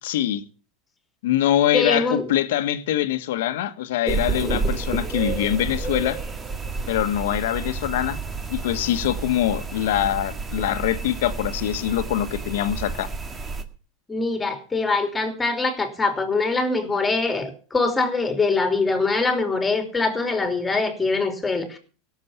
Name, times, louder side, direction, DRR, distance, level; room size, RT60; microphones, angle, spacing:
voice 1, 0.0-0.4 1.2-6.2 6.9-8.2 8.5-13.1, left 12 dB, 80° left, 1.5 m, -24 dB
voice 2, 1.7-2.2 14.1-21.8, left 3 dB, 10° left, 3.1 m, -23 dB
sound 1, 4.1-13.6, right 4 dB, 20° right, 1.8 m, -30 dB
17.0 x 7.3 x 7.0 m
supercardioid pair, 140°, 0 cm